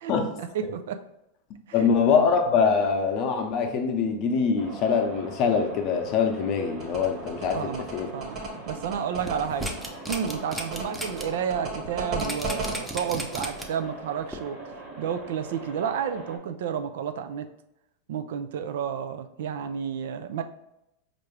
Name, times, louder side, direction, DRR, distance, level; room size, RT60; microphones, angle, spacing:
voice 1, 0.4-1.0 1.7-1.9 7.5-7.8 8.1-9.7 10.1-14.6 15.0-17.4 18.1-20.4, right 8 dB, 75° right, 9 dB, 0.4 m, -31 dB
voice 2, 1.7-8.1, left 6 dB, 45° left, 5 dB, 0.7 m, -24 dB
sound 1, 4.6-16.4, right 2 dB, 55° right, 1.1 m, -42 dB
sound 2, 6.8-12.7, right 3 dB, 40° right, 1.4 m, -34 dB
sound 3, 9.2-11.2 11.6-11.7 12.2-13.8 14.3-14.4, equal, 5° right, 0.6 m, -34 dB
4.5 x 2.5 x 3.2 m, 0.84 s
hypercardioid pair, 115°, 0 cm